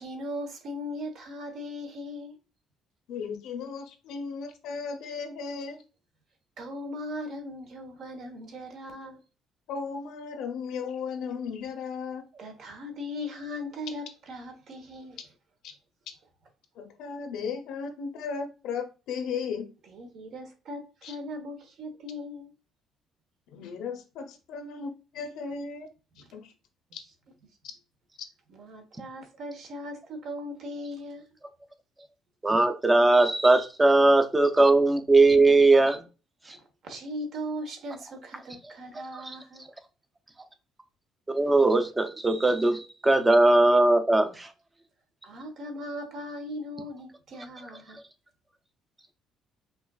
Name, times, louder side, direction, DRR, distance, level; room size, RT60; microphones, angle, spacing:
voice 1, 0.0-2.4 6.6-9.2 12.3-15.3 19.8-22.5 26.1-26.3 28.5-31.3 36.5-39.7 45.2-48.0, left 1 dB, 60° right, 1.1 m, -39 dB
voice 2, 3.1-5.8 9.7-12.2 16.8-19.7 21.0-21.1 23.5-25.9 26.3-26.5 26.9-27.0, left 5 dB, 80° left, 0.8 m, -35 dB
voice 3, 32.4-36.0 36.5-36.6 41.3-44.5, right 2 dB, 15° right, 0.6 m, -20 dB
5.4 x 2.4 x 2.3 m
cardioid pair, 120°, 0 cm